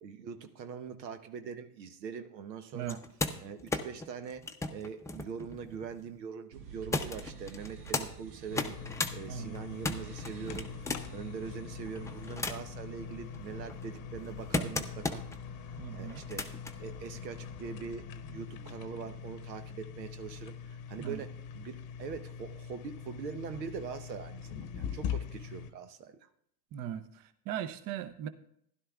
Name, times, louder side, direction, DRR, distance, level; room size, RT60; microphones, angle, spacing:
voice 1, 0.0-3.0 3.4-8.8 9.1-10.7 11.1-15.3 15.9-26.3, right 6 dB, 85° right, 9 dB, 1.0 m, -43 dB
sound 1, 2.8-6.1 6.9-8.1 8.5-9.1 9.5-11.2 11.9-12.8 13.3-15.4 16.1-16.7 17.8-17.9, left 2 dB, 5° left, 0.6 m, -36 dB
sound 2, 6.5-19.4, right 4 dB, 70° right, 1.6 m, -51 dB
sound 3, 8.5-25.7, left 7 dB, 40° left, 0.9 m, -43 dB
voice 2, 9.3-9.6 15.8-16.2 21.0-21.2 26.7-28.3, right 10 dB, 40° right, 12 dB, 0.8 m, -39 dB
15.5 x 11.5 x 2.4 m, 0.70 s
hypercardioid pair, 95°, 49 cm